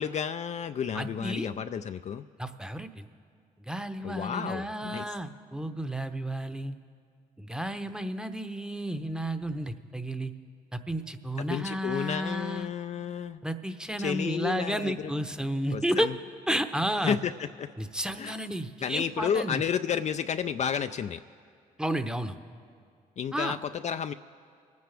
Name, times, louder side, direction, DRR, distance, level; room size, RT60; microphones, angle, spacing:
voice 1, 0.0-2.2 4.0-5.1 11.5-13.4 14.0-14.9 15.7-16.1 17.0-17.7 18.2-18.4 18.8-21.2 23.2-24.1, left 7 dB, 45° left, 9 dB, 0.4 m, -31 dB
voice 2, 0.9-1.5 2.4-3.1 3.7-6.7 7.4-10.3 10.7-12.7 13.4-16.1 16.5-17.2 17.8-19.6 21.8-22.4 23.3-23.6, right 1 dB, 5° right, 9 dB, 0.8 m, -32 dB
25.5 x 9.4 x 3.4 m, 2.2 s
supercardioid pair, 60°, 16 cm